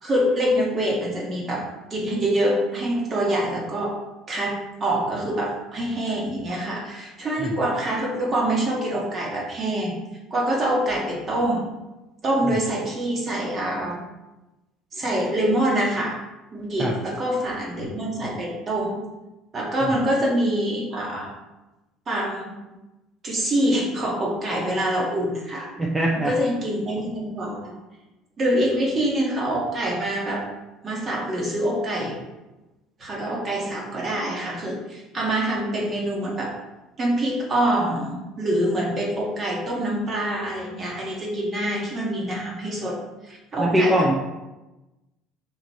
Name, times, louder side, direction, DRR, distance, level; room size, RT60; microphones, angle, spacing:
voice 1, 0.0-4.0 4.3-10.0 10.3-11.7 12.2-14.0 14.9-16.2 16.5-19.0 19.5-21.3 22.1-22.5 23.2-25.7 26.2-27.7 28.4-30.4 30.8-32.2 33.0-36.6 37.0-44.1, right 1 dB, 40° right, -3 dB, 1.6 m, -25 dB
voice 2, 25.8-26.3 43.6-44.1, right 1 dB, 15° right, -2 dB, 0.7 m, -21 dB
4.0 x 2.9 x 4.5 m, 1.0 s
hypercardioid pair, 75°, 0 cm